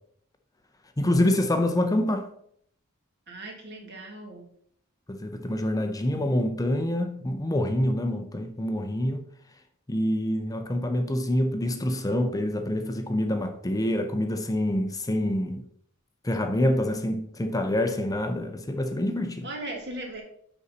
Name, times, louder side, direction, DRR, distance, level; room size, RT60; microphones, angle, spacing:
voice 1, 1.0-2.3 5.1-9.3 9.9-15.6 16.2-19.5, left 1 dB, 15° left, 0.6 m, -26 dB
voice 2, 3.3-4.5 19.4-20.2, right 1 dB, 55° right, 1.9 m, -38 dB
10.0 x 4.1 x 4.2 m
head